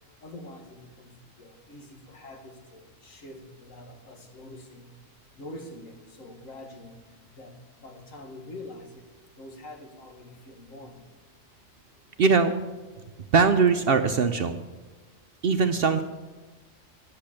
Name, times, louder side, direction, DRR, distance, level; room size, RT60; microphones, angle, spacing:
voice 1, 0.2-1.1 1.4-4.9 5.4-7.0 7.3-9.1 9.4-11.0, left 1 dB, 70° left, 4 dB, 1.8 m, -45 dB
voice 2, 12.2-12.5 13.3-14.6 15.4-16.0, right 5 dB, 60° right, 8 dB, 0.6 m, -21 dB
10.5 x 6.7 x 8.7 m, 1.3 s
omnidirectional pair, 1.4 m